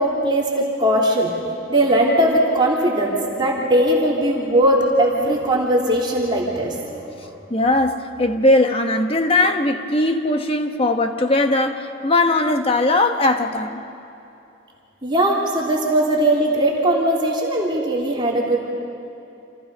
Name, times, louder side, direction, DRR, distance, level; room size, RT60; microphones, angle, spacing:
voice 1, 0.0-1.3 1.7-7.4 15.0-18.6, right 1 dB, 25° right, -4 dB, 3.1 m, -19 dB
voice 2, 7.5-13.8, left 2 dB, 30° left, 5 dB, 1.3 m, -19 dB
29.0 x 28.0 x 5.5 m, 2.8 s
head